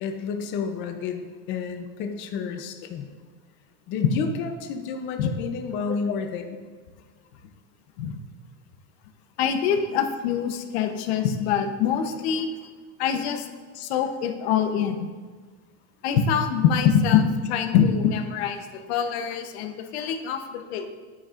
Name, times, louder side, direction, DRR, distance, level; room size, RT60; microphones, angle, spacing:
voice 1, 0.0-3.1 3.9-6.4 9.8-9.9 12.6-12.7 20.3-20.4, left 5 dB, 35° left, 5 dB, 0.6 m, -31 dB
voice 2, 9.4-12.5 13.0-13.5 13.7-15.1 16.0-18.6 18.9-20.9, left 7 dB, 90° left, 6 dB, 1.0 m, -24 dB
10.0 x 9.4 x 2.5 m, 1.4 s
cardioid pair, 175°, 32 cm